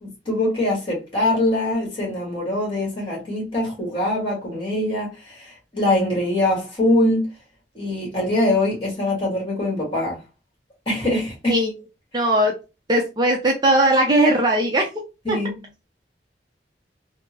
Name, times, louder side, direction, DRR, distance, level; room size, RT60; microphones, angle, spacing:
voice 1, 0.0-7.3 7.7-10.2 10.8-11.6 15.2-15.6, left 1 dB, 30° left, 1.5 m, -23 dB
voice 2, 12.1-12.5 12.9-14.9 15.3-15.4, right 1 dB, 25° right, 0.5 m, -18 dB
3.6 x 2.0 x 2.7 m
head